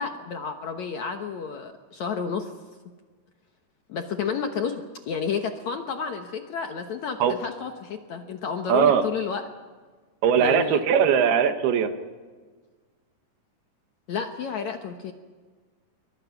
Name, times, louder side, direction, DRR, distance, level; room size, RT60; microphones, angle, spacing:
voice 1, 0.0-2.5 3.9-9.4 10.4-10.8 14.1-15.1, left 6 dB, 65° left, 5 dB, 1.9 m, -31 dB
voice 2, 8.7-9.1 10.2-11.9, right 7 dB, 80° right, 8 dB, 3.3 m, -20 dB
28.5 x 23.5 x 5.9 m, 1.4 s
omnidirectional pair, 4.5 m